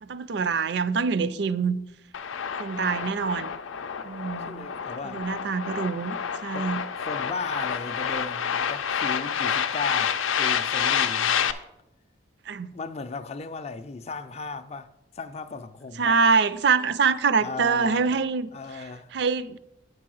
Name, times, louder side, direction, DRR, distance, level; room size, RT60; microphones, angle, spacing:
voice 1, 0.0-1.8 2.6-3.6 4.0-4.7 5.0-6.8 12.5-12.7 16.0-18.8 19.1-19.6, right 5 dB, 60° right, 0.4 m, -25 dB
sound 1, 2.1-11.5, left 7 dB, 90° left, 0.5 m, -28 dB
voice 2, 4.5-5.2 6.5-6.7 7.0-11.5 12.7-14.9 15.1-16.2 17.4-18.2 18.5-19.1, left 3 dB, 30° left, 0.4 m, -36 dB
9.1 x 4.7 x 6.2 m
head